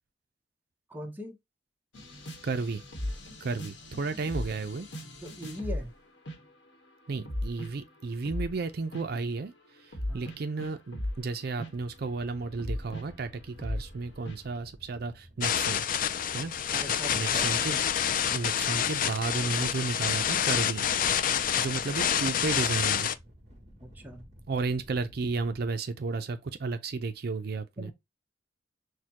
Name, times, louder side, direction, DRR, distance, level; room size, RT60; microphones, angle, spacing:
voice 1, 0.9-1.4 5.2-5.9 10.1-10.4 16.7-17.5 23.8-24.3 27.8-27.9, equal, 10° right, 0.9 m, -41 dB
sound 1, 1.9-5.9 6.3-6.7 7.1-8.6 8.9-9.1 9.9-14.0 14.3-14.4, left 1 dB, 80° left, 1.2 m, -37 dB
voice 2, 2.4-2.8 3.4-4.9 7.1-15.8 16.3-16.8 17.1-17.8 18.3-20.8 21.3-23.1 24.5-27.9, right 4 dB, 60° right, 0.5 m, -33 dB
sound 2, 11.7-25.7, equal, 35° right, 1.5 m, -52 dB
sound 3, 15.4-23.1, left 9 dB, 50° left, 0.4 m, -28 dB
6.5 x 2.2 x 2.8 m
head